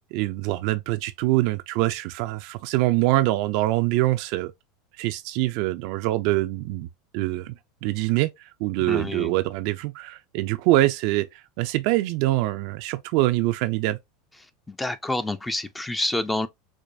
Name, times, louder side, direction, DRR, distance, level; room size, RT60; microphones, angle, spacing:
voice 1, 0.1-4.5 5.0-6.9 7.1-7.6 7.8-8.3 8.6-11.3 11.6-14.0, right 17 dB, 60° right, 0.4 m, -24 dB
voice 2, 8.9-9.3 14.7-16.5, left 2 dB, 10° left, 0.5 m, -28 dB
4.6 x 2.2 x 2.5 m
hypercardioid pair, 90°, 0 cm